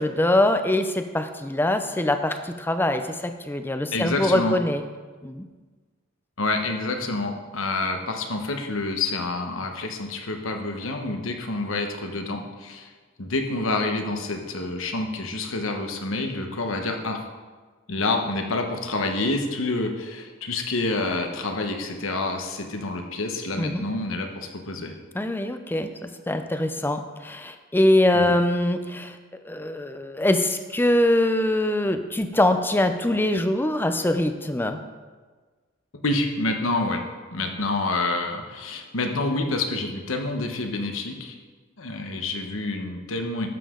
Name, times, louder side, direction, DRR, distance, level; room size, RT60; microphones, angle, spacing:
voice 1, 0.0-4.8 5.2-5.4 23.6-23.9 25.1-29.2 29.4-34.8, left 1 dB, 10° left, 8 dB, 0.5 m, -23 dB
voice 2, 3.9-4.6 6.4-12.9 13.2-17.2 17.9-24.9 28.1-28.3 36.0-37.0 37.3-41.3 41.8-43.5, left 2 dB, 80° left, 4 dB, 1.2 m, -28 dB
12.0 x 7.4 x 3.8 m, 1.4 s
head